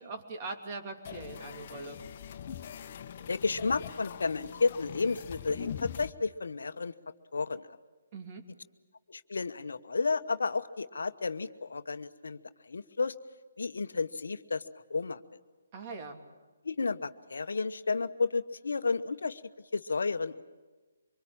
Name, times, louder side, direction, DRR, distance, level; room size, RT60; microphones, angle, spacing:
voice 1, 0.0-2.0 8.1-8.4 15.7-16.2, right 3 dB, 35° right, 4 dB, 2.9 m, -41 dB
sound 1, 1.0-6.1, left 8 dB, 45° left, 1.2 m, -42 dB
voice 2, 3.3-6.9 7.3-7.7 9.1-12.4 12.6-13.1 13.6-15.2 16.6-19.4 19.7-20.4, left 4 dB, 75° left, 11 dB, 1.0 m, -32 dB
25.0 x 23.0 x 8.8 m, 1.3 s
figure-of-eight pair, 145°, 0 cm